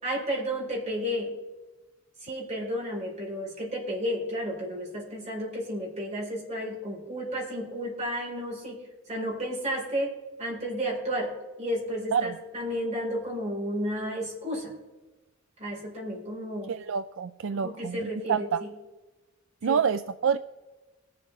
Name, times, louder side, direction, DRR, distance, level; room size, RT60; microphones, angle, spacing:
voice 1, 0.0-1.3 2.2-8.8 9.1-11.3 11.6-14.7 15.6-16.7 17.6-18.7 19.6-19.8, equal, 35° right, -3 dB, 4.4 m, -32 dB
voice 2, 16.7-18.6 19.6-20.4, right 7 dB, 65° right, 11 dB, 0.4 m, -27 dB
21.5 x 7.7 x 3.4 m, 1.2 s
head